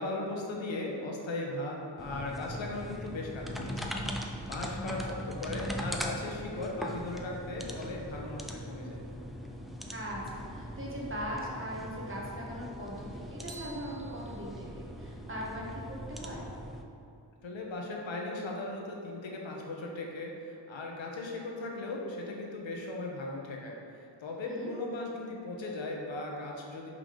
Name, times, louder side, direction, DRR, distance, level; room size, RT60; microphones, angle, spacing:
voice 1, 0.0-9.0 17.4-26.9, left 2 dB, 75° left, -1 dB, 1.1 m, -38 dB
sound 1, 2.0-16.8, equal, ahead, 0.3 m, -40 dB
voice 2, 9.9-16.5 24.5-24.7, equal, 25° right, -4 dB, 1.3 m, -40 dB
sound 2, 13.5-15.4, right 3 dB, 65° right, 1.2 m, -52 dB
5.3 x 3.6 x 5.1 m, 2.7 s
wide cardioid pair, 115°, 46 cm